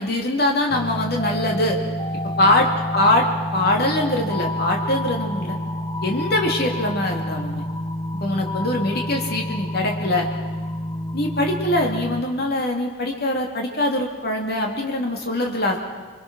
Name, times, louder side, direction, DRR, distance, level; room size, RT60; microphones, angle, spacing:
voice 1, 0.0-1.8 2.4-5.6 6.0-7.6 8.2-10.3 11.1-15.9, left 1 dB, 50° left, 1 dB, 2.6 m, -22 dB
sound 1, 0.7-12.2, equal, 20° left, 2.0 m, -28 dB
28.5 x 23.0 x 6.1 m, 1.5 s
head